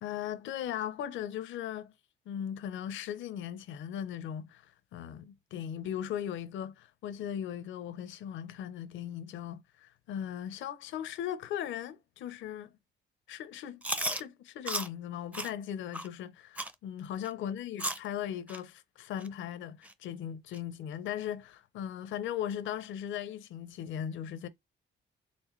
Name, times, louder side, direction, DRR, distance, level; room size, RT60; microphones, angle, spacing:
voice 1, 0.0-1.9 2.3-12.7 13.3-13.8 14.1-24.5, left 10 dB, 75° left, 0.5 m, -38 dB
Chewing mastication, 13.8-14.2 14.7-14.9 15.3-15.5 15.9-16.1 16.6-16.7 17.2-17.3 17.8-18.1 18.5-18.6 19.2-19.3 19.8-19.9 20.5-20.6, right 1 dB, 5° right, 0.5 m, -34 dB
4.2 x 3.1 x 3.0 m
cardioid pair, 90°, 20 cm